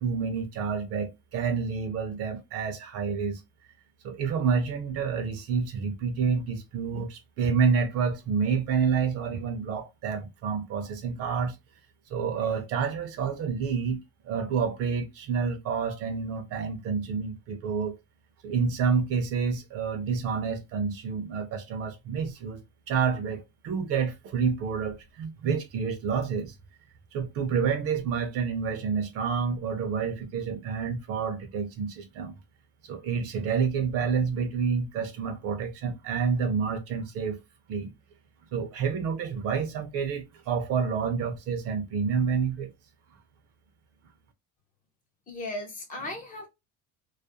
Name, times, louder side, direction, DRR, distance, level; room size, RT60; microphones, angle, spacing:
voice 1, 0.0-3.4 4.0-11.6 12.1-18.0 18.4-26.6 27.1-32.3 32.8-37.4 37.7-37.9 38.5-42.7, right 6 dB, 45° right, 0.5 m, -29 dB
voice 2, 45.3-46.5, left 1 dB, 25° left, 0.6 m, -36 dB
2.4 x 2.0 x 2.6 m
cardioid pair, 165°, 35 cm